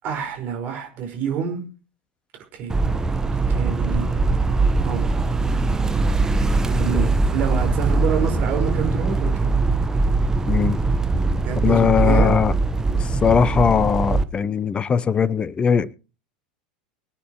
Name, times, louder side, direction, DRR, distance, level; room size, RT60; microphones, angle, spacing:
voice 1, 0.0-1.7 2.5-2.8 3.5-4.3 4.8-5.4 6.6-9.6 11.4-12.3, right 7 dB, 40° right, 4.8 m, -28 dB
sound 1, 2.7-14.2, right 3 dB, 15° right, 0.9 m, -21 dB
voice 2, 10.5-10.8 11.6-12.5 13.2-15.9, left 7 dB, 20° left, 0.6 m, -20 dB
24.0 x 9.3 x 3.0 m
figure-of-eight pair, 80°, 5 cm